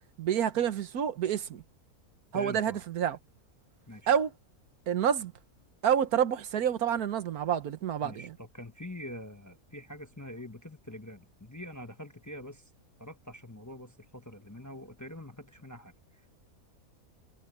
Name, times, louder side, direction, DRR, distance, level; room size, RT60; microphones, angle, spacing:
voice 1, 0.2-1.6 2.3-3.2 4.1-4.3 4.9-5.3 5.8-8.3, right 9 dB, 85° right, 1.5 m, -28 dB
voice 2, 2.3-2.8 3.9-4.1 8.0-12.7 13.0-16.3, left 1 dB, 15° left, 0.9 m, -45 dB
omnidirectional pair, 1.5 m